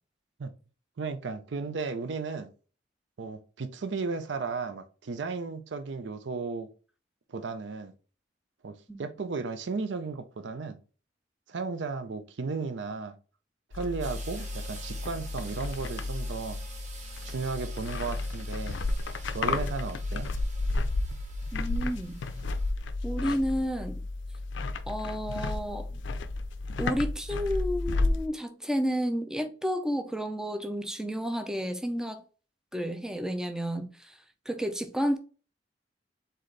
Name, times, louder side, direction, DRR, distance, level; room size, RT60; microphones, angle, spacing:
voice 1, 1.0-2.5 3.2-6.7 7.3-7.9 8.6-10.8 11.5-13.2 13.7-16.6 17.2-18.8 19.3-20.3, right 4 dB, 70° right, 0.5 m, -34 dB
sound 1, 13.7-28.3, left 2 dB, 75° left, 0.4 m, -32 dB
sound 2, 14.0-22.7, right 4 dB, 40° right, 0.9 m, -48 dB
voice 2, 21.5-22.2 23.0-24.0 24.9-26.0 26.8-32.2 32.7-34.2 34.5-35.2, equal, 5° right, 0.5 m, -31 dB
4.1 x 3.8 x 3.2 m
head